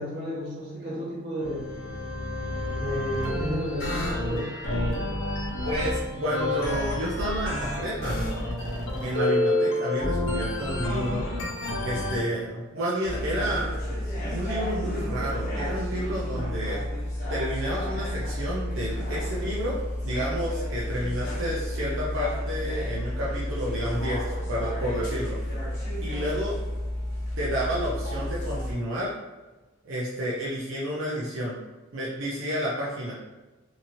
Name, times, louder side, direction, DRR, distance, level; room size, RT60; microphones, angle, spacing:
voice 1, 0.0-1.7 2.8-4.5, equal, 55° right, -7 dB, 1.2 m, -32 dB
sound 1, 1.4-12.2, left 1 dB, 80° left, 0.9 m, -29 dB
voice 2, 5.6-8.2 9.0-11.2 11.8-13.7 14.3-16.8 17.3-19.8 20.0-25.4 26.0-26.5 27.4-29.1 29.8-31.6 31.9-33.1, equal, 80° right, -6 dB, 0.5 m, -30 dB
sound 2, 13.0-28.7, left 1 dB, 40° left, 0.8 m, -31 dB
2.9 x 2.8 x 2.6 m, 1.2 s
head